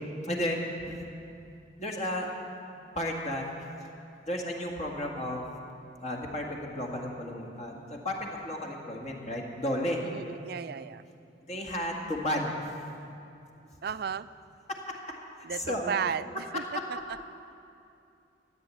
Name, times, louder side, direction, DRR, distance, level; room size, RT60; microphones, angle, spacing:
voice 1, 0.2-1.0 1.8-2.3 2.9-3.5 3.8-3.9 4.2-5.5 6.0-10.0 11.5-12.6 14.7-15.2 15.5-15.9 16.3-16.9, left 1 dB, 35° left, 0 dB, 1.8 m, -33 dB
voice 2, 10.0-11.0 13.8-14.3 15.4-16.6 16.9-17.0, right 7 dB, 55° right, 15 dB, 0.4 m, -34 dB
14.0 x 9.8 x 8.4 m, 2.7 s
head